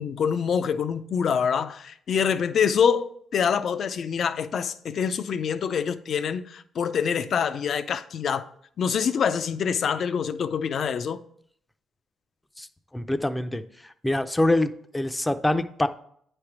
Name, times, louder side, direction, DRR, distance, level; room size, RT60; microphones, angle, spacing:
voice 1, 0.0-8.5 8.8-11.2, left 7 dB, 60° left, 0.5 m, -25 dB
voice 2, 12.9-15.9, left 1 dB, 10° left, 0.5 m, -25 dB
9.3 x 3.4 x 6.0 m
cardioid pair, 90°, 0 cm